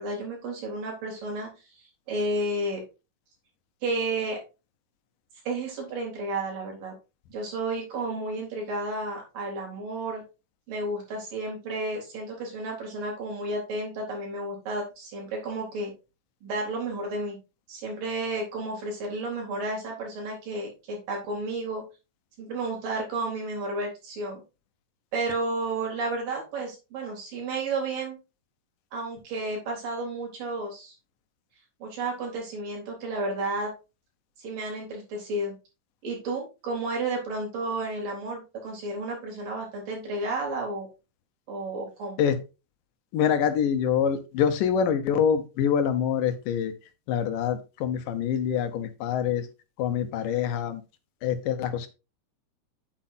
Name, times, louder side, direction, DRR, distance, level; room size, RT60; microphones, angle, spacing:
voice 1, 0.0-1.5 1.7-2.8 3.8-4.4 5.5-6.9 7.3-10.2 10.7-15.9 16.4-17.4 17.7-21.8 22.4-24.4 25.1-28.2 28.9-30.9 31.8-33.7 34.4-35.5 36.0-40.9 41.5-42.2, right 2 dB, 85° right, -1 dB, 5.2 m, -32 dB
voice 2, 43.1-46.7 47.1-49.5 49.8-50.8 51.2-51.9, left 8 dB, 85° left, 9 dB, 2.7 m, -25 dB
8.9 x 8.6 x 2.7 m, 0.29 s
omnidirectional pair, 3.8 m